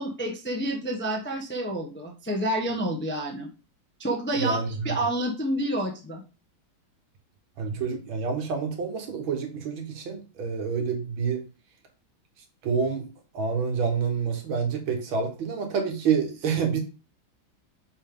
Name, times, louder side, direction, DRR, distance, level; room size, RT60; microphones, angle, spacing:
voice 1, 0.0-3.5 4.0-6.2, right 1 dB, 10° left, 1 dB, 0.6 m, -29 dB
voice 2, 4.3-5.0 7.6-11.4 12.6-13.1 13.3-16.8, right 6 dB, 85° right, 4 dB, 2.1 m, -28 dB
6.3 x 5.1 x 3.7 m, 0.34 s
omnidirectional pair, 2.1 m